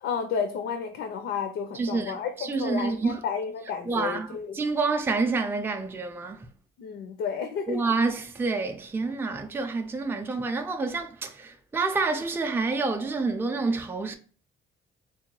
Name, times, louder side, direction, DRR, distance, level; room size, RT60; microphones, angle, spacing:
voice 1, 0.0-4.6 6.8-7.8, left 6 dB, 75° left, 0.5 m, -32 dB
voice 2, 1.7-3.2 3.9-6.5 7.7-14.2, right 3 dB, 10° right, 0.4 m, -28 dB
3.7 x 2.2 x 3.0 m
cardioid pair, 90°, 20 cm